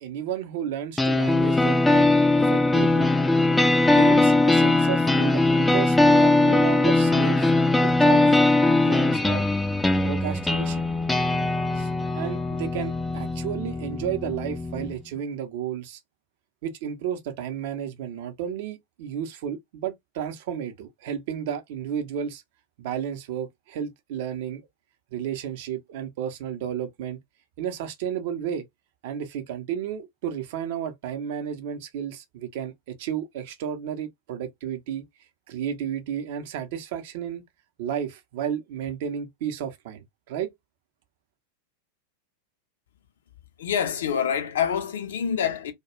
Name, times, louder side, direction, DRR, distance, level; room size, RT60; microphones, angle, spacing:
voice 1, 0.0-2.1 2.4-3.1 3.8-7.5 7.8-9.4 10.0-10.9 11.7-11.9 12.1-16.0 16.6-22.4 22.8-24.6 25.1-27.2 27.6-28.7 29.0-35.0 35.5-37.4 37.8-40.5, right 9 dB, 50° right, 0.6 m, -32 dB
sound 1, 1.0-15.0, left 2 dB, 5° left, 0.4 m, -21 dB
voice 2, 43.6-45.7, left 8 dB, 60° left, 0.5 m, -26 dB
2.3 x 2.2 x 2.9 m
figure-of-eight pair, 90°, 0 cm